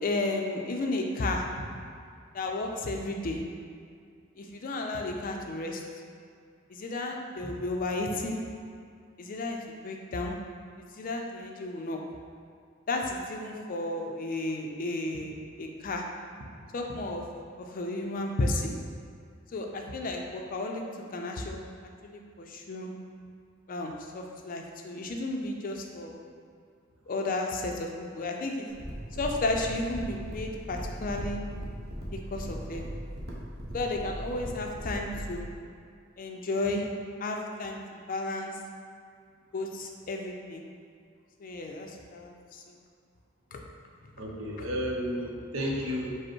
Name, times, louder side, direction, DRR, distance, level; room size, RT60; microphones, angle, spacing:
voice 1, 0.0-1.4 2.3-3.4 4.4-5.8 6.7-8.4 9.2-10.3 10.8-12.0 12.9-16.0 16.7-17.2 17.6-18.8 19.5-20.8 21.1-21.6 22.0-22.9 23.7-26.2 27.1-28.7 29.2-31.4 32.1-32.9 33.7-35.5 36.2-36.9 37.2-38.5 39.5-40.7 41.4-42.7 43.5-43.6, left 2 dB, 45° left, 2 dB, 0.4 m, -33 dB
sound 1, 28.7-35.4, equal, 55° right, 0.7 m, -38 dB
voice 2, 44.2-46.1, equal, 85° right, -3 dB, 0.7 m, -32 dB
5.1 x 2.0 x 4.4 m, 2.3 s
head